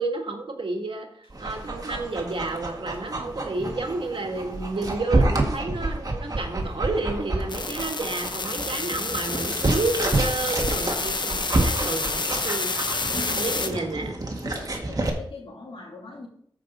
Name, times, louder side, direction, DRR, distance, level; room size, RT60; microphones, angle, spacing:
voice 1, 0.0-12.7 13.4-14.1, right 3 dB, 80° right, 3 dB, 1.6 m, -30 dB
Dog, 1.3-15.1, right 2 dB, 45° right, 1.7 m, -29 dB
sound 1, 7.5-13.7, left 3 dB, 60° left, 0.9 m, -29 dB
voice 2, 13.0-13.9 14.4-16.3, left 3 dB, 90° left, -1 dB, 2.7 m, -41 dB
14.0 x 5.3 x 4.0 m, 0.65 s
wide cardioid pair, 90°, 9 cm